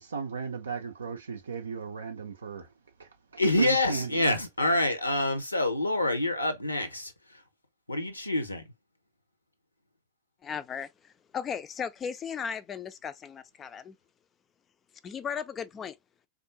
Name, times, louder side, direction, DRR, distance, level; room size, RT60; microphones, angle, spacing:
voice 1, 0.0-2.7 3.0-4.2, right 5 dB, 70° right, 0.5 m, -36 dB
voice 2, 3.4-7.1 7.9-8.6, left 1 dB, 85° left, 0.7 m, -26 dB
voice 3, 10.4-10.9 11.3-13.9 15.0-16.0, left 7 dB, 25° left, 0.4 m, -36 dB
3.5 x 2.5 x 2.6 m
figure-of-eight pair, 90°, 0 cm